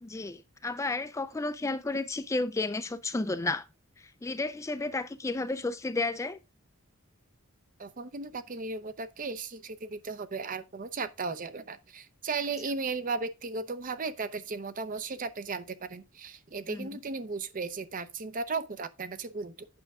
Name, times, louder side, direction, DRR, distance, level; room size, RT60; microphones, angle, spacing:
voice 1, 0.0-3.7 4.0-6.4 16.7-17.0, left 2 dB, 15° left, 0.4 m, -32 dB
voice 2, 7.8-19.7, right 4 dB, 40° right, 0.6 m, -36 dB
8.8 x 5.9 x 3.6 m
head